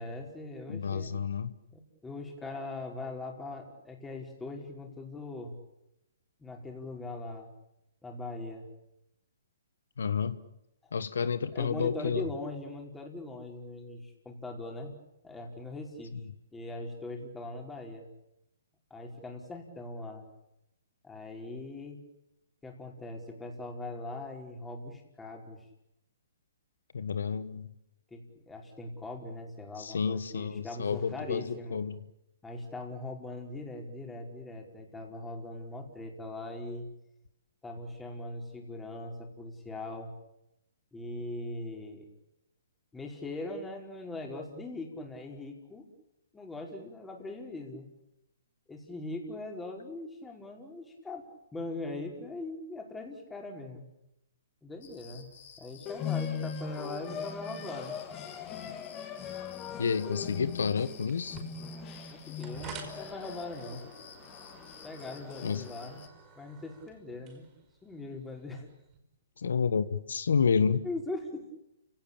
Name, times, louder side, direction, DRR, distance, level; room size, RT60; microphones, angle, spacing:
voice 1, 0.0-1.1 1.7-5.5 6.4-7.5 8.0-8.7 10.8-10.9 11.5-15.0 15.2-16.1 16.5-18.1 18.9-20.2 21.0-22.0 22.6-25.7 28.1-31.8 32.4-36.9 37.6-40.1 40.9-42.1 42.9-45.9 46.3-47.9 48.7-51.3 51.5-53.9 54.6-55.3 55.6-58.0 62.1-63.8 64.8-66.1 66.4-67.5 67.8-68.7 70.8-71.5, left 2 dB, 10° left, 1 dB, 5.0 m, -41 dB
voice 2, 0.7-1.5 10.0-10.4 10.9-12.3 26.9-27.7 29.8-32.0 59.8-61.4 65.4-65.7 69.4-70.9, left 6 dB, 80° left, 13 dB, 1.3 m, -30 dB
sound 1, 54.8-66.1, left 7 dB, 60° left, 7.8 m, -53 dB
sound 2, 55.9-66.1, left 7 dB, 25° left, 2.7 m, -40 dB
sound 3, 61.1-69.0, right 4 dB, 25° right, 5.3 m, -50 dB
30.0 x 17.5 x 8.9 m, 0.86 s
hypercardioid pair, 140°, 0 cm